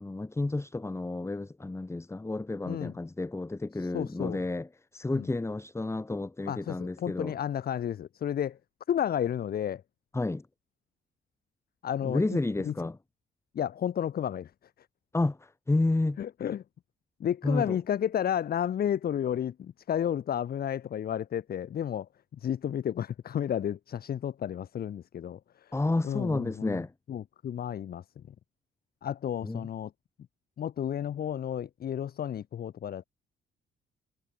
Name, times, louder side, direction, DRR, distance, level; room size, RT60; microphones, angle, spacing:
voice 1, 0.0-7.3 10.1-10.5 12.0-13.0 15.1-16.2 17.4-17.8 25.7-26.9 29.4-29.7, left 2 dB, 15° left, 1.5 m, -31 dB
voice 2, 3.8-4.4 5.1-5.3 6.5-8.6 8.9-9.8 11.8-12.7 13.5-14.5 16.2-16.6 17.2-25.7 26.0-26.8 27.1-28.0 29.0-29.9 30.6-33.0, left 9 dB, 50° left, 0.8 m, -32 dB
cardioid pair, 90°, 20 cm